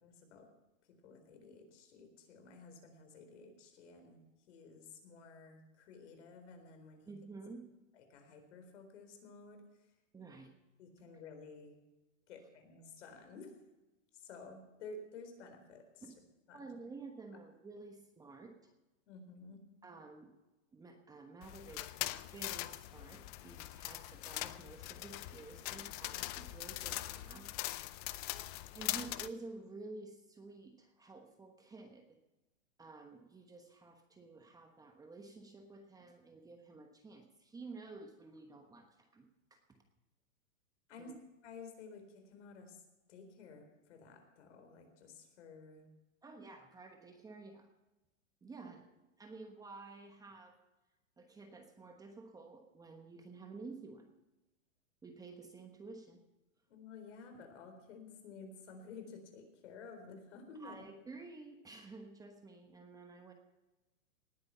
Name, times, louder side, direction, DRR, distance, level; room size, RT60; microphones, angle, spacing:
voice 1, 0.0-0.5 0.8-4.2 4.5-7.1 7.9-9.6 10.8-11.8 12.3-13.5 14.1-16.1 16.5-16.6 19.1-19.6 40.9-41.1 41.4-42.8 43.1-45.9 56.7-60.8, left 4 dB, 60° left, 6 dB, 4.1 m, -53 dB
voice 2, 7.0-7.6 10.1-10.5 16.0-16.1 16.5-18.7 19.8-20.3 20.7-27.5 28.7-32.2 32.8-39.8 41.0-41.2 46.2-47.7 48.4-48.9 49.2-50.6 51.2-54.1 55.0-56.2 60.6-63.3, right 3 dB, 10° right, 4 dB, 1.1 m, -51 dB
sound 1, 21.4-29.3, left 17 dB, 30° left, 0.5 m, -42 dB
19.0 x 9.6 x 5.8 m, 1.0 s
hypercardioid pair, 145°, 40 cm